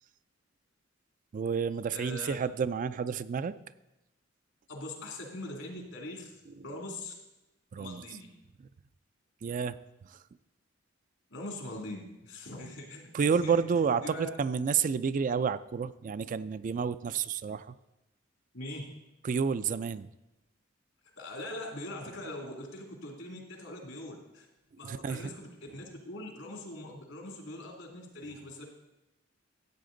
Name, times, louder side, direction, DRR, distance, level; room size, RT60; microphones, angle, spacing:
voice 1, 1.3-3.5 7.7-8.0 9.4-9.8 10.1-10.2 13.1-17.7 19.2-20.1 24.8-25.3, right 6 dB, 40° right, 13 dB, 0.3 m, -30 dB
voice 2, 1.9-2.3 4.7-7.1 7.7-8.3 11.3-13.5 14.0-14.3 18.5-18.8 21.2-24.5 24.8-28.7, left 1 dB, 75° left, 1 dB, 2.5 m, -42 dB
14.0 x 8.4 x 3.9 m, 0.95 s
head